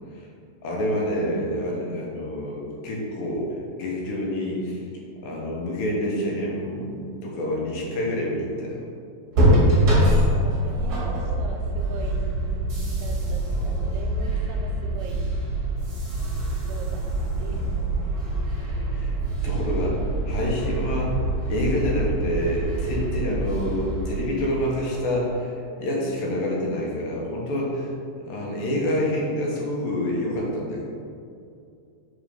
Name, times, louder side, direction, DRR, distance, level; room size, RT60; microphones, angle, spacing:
voice 1, 0.6-4.8 5.2-8.8 18.9-19.1 19.4-27.9 28.2-30.8, left 1 dB, 75° left, -3 dB, 2.7 m, -27 dB
sound 1, 9.3-25.1, right 1 dB, 40° right, 1.5 m, -25 dB
voice 2, 10.3-15.2 16.7-18.1, right 2 dB, 85° right, 2 dB, 2.3 m, -40 dB
5.1 x 5.0 x 5.1 m, 2.4 s
omnidirectional pair, 4.0 m